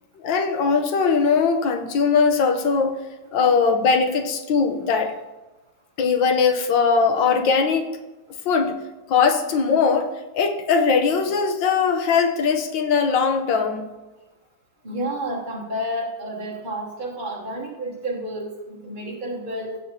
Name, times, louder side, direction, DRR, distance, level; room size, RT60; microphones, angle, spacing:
voice 1, 0.2-2.9 3.3-5.1 6.0-7.9 8.4-8.7 9.1-13.9, left 5 dB, 75° left, 5 dB, 1.6 m, -20 dB
voice 2, 14.8-19.8, right 1 dB, 30° right, -2 dB, 1.0 m, -30 dB
15.5 x 6.9 x 2.8 m, 1.1 s
omnidirectional pair, 2.1 m